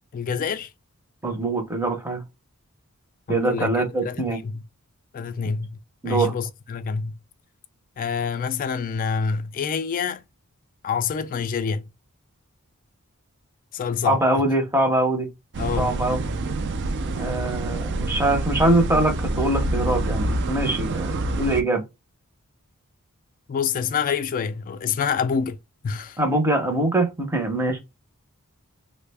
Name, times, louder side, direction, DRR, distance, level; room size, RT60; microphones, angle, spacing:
voice 1, 0.1-0.7 3.3-3.8 4.0-4.6 5.1-5.8 6.1-7.1 8.0-10.2 10.8-11.8 13.7-14.4 15.6-15.9 16.3-16.4 23.5-25.6 25.8-26.2, left 6 dB, 40° left, 0.3 m, -27 dB
voice 2, 1.2-2.2 3.3-4.4 6.0-6.3 14.0-15.3 15.8-16.2 17.1-21.8 26.2-27.8, right 2 dB, 10° right, 0.6 m, -23 dB
sound 1, 15.5-21.6, right 2 dB, 50° right, 0.4 m, -27 dB
3.3 x 2.1 x 3.3 m
head